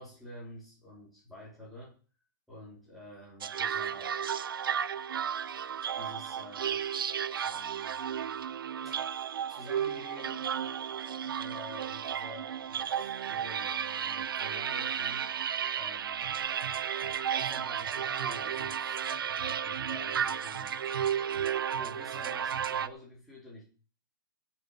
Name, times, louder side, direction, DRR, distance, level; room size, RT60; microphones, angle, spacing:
voice 1, 0.0-2.0 2.5-4.2 5.9-6.9 7.4-8.5 8.8-9.1 9.5-10.8 11.3-15.3 15.7-16.4 17.4-20.8 21.8-23.6, left 1 dB, ahead, -8 dB, 3.7 m, -49 dB
sound 1, 3.4-22.9, right 8 dB, 90° right, 0.7 m, -33 dB
16.5 x 7.2 x 5.6 m, 0.37 s
hypercardioid pair, 175°, 11 cm